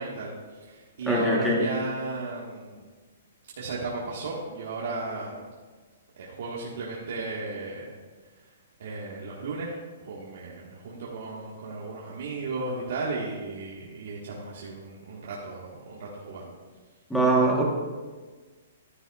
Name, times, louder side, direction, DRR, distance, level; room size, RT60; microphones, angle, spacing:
voice 1, 0.0-2.8 3.6-5.5 6.2-7.9 8.8-16.5, right 3 dB, 55° right, -5 dB, 1.6 m, -35 dB
voice 2, 1.1-1.6 17.1-17.6, right 1 dB, ahead, -3 dB, 1.2 m, -22 dB
12.5 x 10.0 x 2.4 m, 1.4 s
hypercardioid pair, 175°, 0 cm